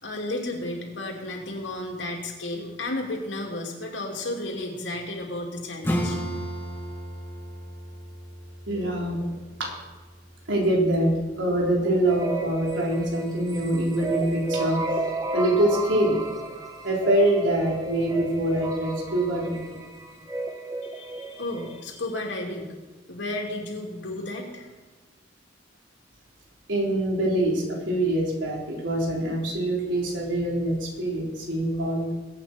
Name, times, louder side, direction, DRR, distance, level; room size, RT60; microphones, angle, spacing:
voice 1, 0.0-6.2 20.8-22.7 23.1-24.7, left 2 dB, 75° left, 0 dB, 2.9 m, -33 dB
Acoustic guitar / Strum, 5.8-11.1, equal, 10° left, 1.8 m, -34 dB
voice 2, 8.7-9.7 10.5-16.2 16.8-19.6 26.7-32.1, right 1 dB, 85° right, -2 dB, 3.7 m, -25 dB
sound 1, 12.1-21.8, right 2 dB, 20° right, 1.2 m, -33 dB
21.5 x 8.8 x 4.5 m, 1.3 s
head